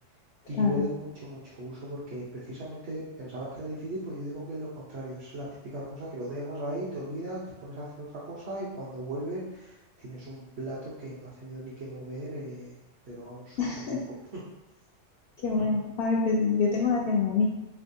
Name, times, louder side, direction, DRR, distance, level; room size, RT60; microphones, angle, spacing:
voice 1, 0.5-12.8 13.0-13.6 13.9-14.0 15.6-15.8, right 1 dB, 60° right, -8 dB, 1.1 m, -37 dB
voice 2, 13.6-14.0 15.4-17.4, left 4 dB, 65° left, -2 dB, 0.7 m, -26 dB
4.0 x 3.4 x 2.6 m, 0.98 s
omnidirectional pair, 1.3 m